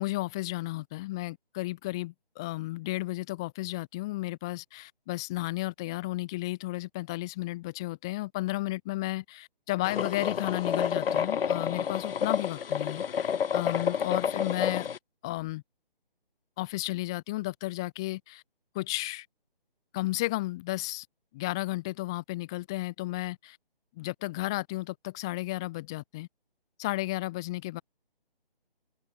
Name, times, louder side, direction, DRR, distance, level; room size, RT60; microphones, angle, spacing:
voice 1, 0.0-14.9 15.2-15.6 16.6-18.4 18.7-19.3 19.9-21.1 21.3-23.6 24.0-26.3 26.8-27.8, left 19 dB, 5° left, 0.7 m, -33 dB
sound 1, 9.9-15.0, left 7 dB, 75° left, 0.5 m, -29 dB
figure-of-eight pair, 165°, 29 cm